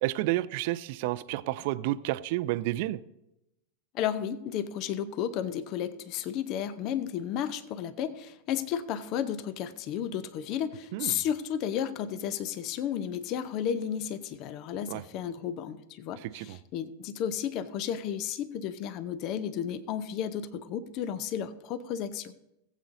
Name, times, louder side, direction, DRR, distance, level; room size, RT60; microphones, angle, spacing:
voice 1, 0.0-3.0 10.9-11.2 14.9-15.0 16.2-16.6, right 16 dB, 50° right, 0.4 m, -30 dB
voice 2, 3.9-22.3, left 9 dB, 40° left, 0.6 m, -33 dB
19.5 x 8.1 x 2.7 m
figure-of-eight pair, 90°, 0 cm